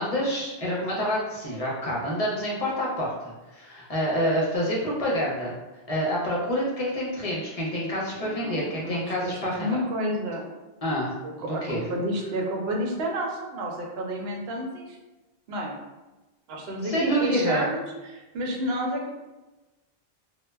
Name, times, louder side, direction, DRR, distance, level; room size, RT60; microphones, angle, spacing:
voice 1, 0.0-5.5 5.9-9.8 10.8-11.8 16.8-17.7, equal, 45° left, -5 dB, 0.5 m, -27 dB
voice 2, 8.2-10.5 11.2-15.0 15.5-15.7 16.5-19.1, right 1 dB, 75° right, 0 dB, 0.8 m, -30 dB
2.1 x 2.1 x 3.3 m, 1.1 s
omnidirectional pair, 1.0 m